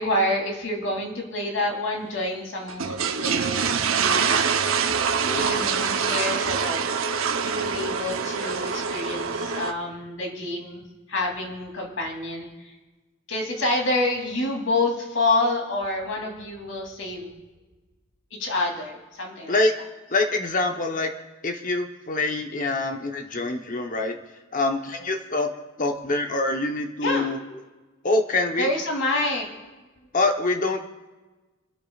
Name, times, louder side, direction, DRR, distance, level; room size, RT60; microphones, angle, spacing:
voice 1, 0.0-4.5 5.3-6.8 7.4-12.7 13.3-17.3 18.4-19.6 27.0-27.3 28.6-29.5, left 2 dB, 70° left, 0 dB, 2.9 m, -28 dB
sound 1, 2.7-9.7, right 6 dB, 80° right, 0.8 m, -25 dB
voice 2, 5.3-5.7 19.5-19.7 20.1-21.1 21.4-24.2 24.5-25.5 25.8-27.4 28.0-28.7 30.1-30.8, left 2 dB, 40° left, 4 dB, 1.0 m, -25 dB
28.5 x 12.5 x 2.4 m, 1.2 s
head